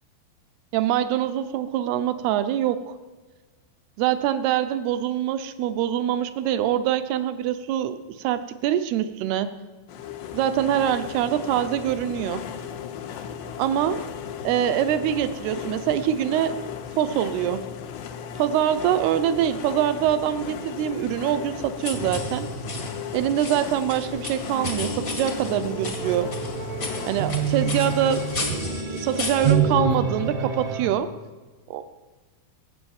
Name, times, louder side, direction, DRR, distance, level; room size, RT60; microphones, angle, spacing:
voice 1, 0.7-3.0 4.0-9.5 10.3-12.4 13.6-14.0 14.4-16.6 16.9-17.7 18.4-22.5 23.1-26.3 27.1-28.3 28.9-31.1 31.7-31.9, right 10 dB, 75° right, 11 dB, 2.7 m, -24 dB
sound 1, 9.9-28.4, left 8 dB, 80° left, 3.3 m, -36 dB
sound 2, 21.8-29.5, left 3 dB, 45° left, 1.1 m, -35 dB
sound 3, 21.9-30.9, right 5 dB, 60° right, 1.7 m, -28 dB
23.5 x 8.6 x 7.2 m, 1.3 s
omnidirectional pair, 5.0 m